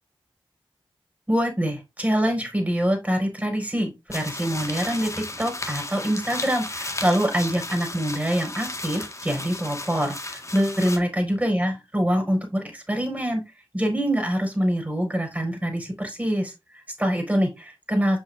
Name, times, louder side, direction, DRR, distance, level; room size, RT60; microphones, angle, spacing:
voice 1, 1.3-5.1 5.4-13.4 13.7-18.2, equal, 15° right, 3 dB, 4.9 m, -25 dB
sound 1, 4.1-11.0, left 2 dB, 30° left, 1.7 m, -34 dB
7.8 x 5.8 x 2.6 m, 0.23 s
cardioid pair, 45°, 10 cm